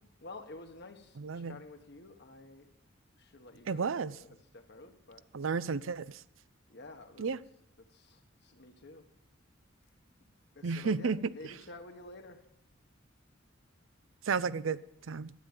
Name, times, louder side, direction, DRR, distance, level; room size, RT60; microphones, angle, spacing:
voice 1, 0.2-2.7 3.2-5.7 6.7-7.3 7.8-9.1 10.5-12.4, left 2 dB, 55° left, 1.5 m, -51 dB
voice 2, 1.2-1.6 3.7-4.2 5.3-6.2 7.2-7.4 10.6-11.3 14.2-14.8 15.1-15.3, right 5 dB, 75° right, 0.5 m, -32 dB
12.0 x 9.3 x 9.1 m
head